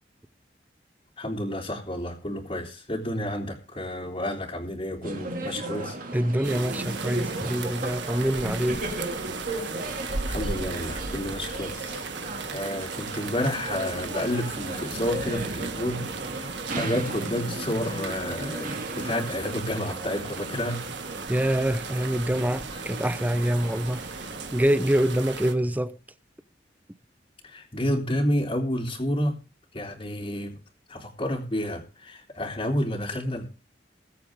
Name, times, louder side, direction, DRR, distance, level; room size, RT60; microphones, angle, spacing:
voice 1, 1.2-6.0 10.3-12.0 12.5-16.0 16.3-20.8 22.7-22.8 27.4-29.4 29.7-30.6 30.9-33.5, left 1 dB, 30° left, 3.2 m, -30 dB
sound 1, 5.0-24.5, right 2 dB, 50° right, 2.5 m, -36 dB
voice 2, 6.1-8.9 21.3-24.1 24.5-26.0, right 1 dB, 10° right, 0.7 m, -25 dB
sound 2, 6.4-25.5, right 4 dB, 80° right, 1.6 m, -36 dB
22.0 x 8.3 x 3.7 m
head